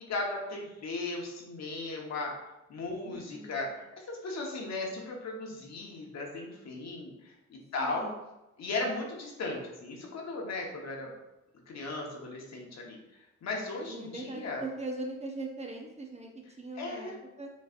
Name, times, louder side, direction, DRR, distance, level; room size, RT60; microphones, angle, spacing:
voice 1, 0.1-2.3 2.7-8.1 8.6-11.1 11.7-13.0 13.4-14.6 16.7-17.1, left 2 dB, 60° left, 0 dB, 1.1 m, -36 dB
voice 2, 3.0-3.7 7.8-8.2 13.8-17.5, right 2 dB, 20° right, 1 dB, 0.7 m, -41 dB
5.3 x 3.2 x 2.5 m, 0.94 s
cardioid pair, 90°, 30 cm